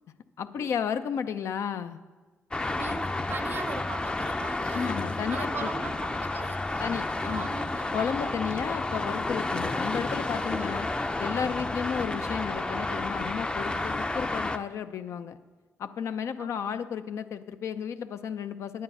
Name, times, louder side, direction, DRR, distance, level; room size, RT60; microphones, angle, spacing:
voice 1, 0.4-2.0 4.7-5.7 6.8-7.5 7.9-10.9 11.2-15.4 15.8-18.8, left 7 dB, 70° left, 0.5 m, -33 dB
Traffic noise roadway noise, 2.5-14.6, left 2 dB, 20° left, 0.5 m, -31 dB
voice 2, 2.7-5.0 5.3-8.2 10.4-10.7 16.4-16.8, right 5 dB, 45° right, 0.5 m, -41 dB
9.5 x 9.4 x 5.5 m
cardioid pair, 90°, 5 cm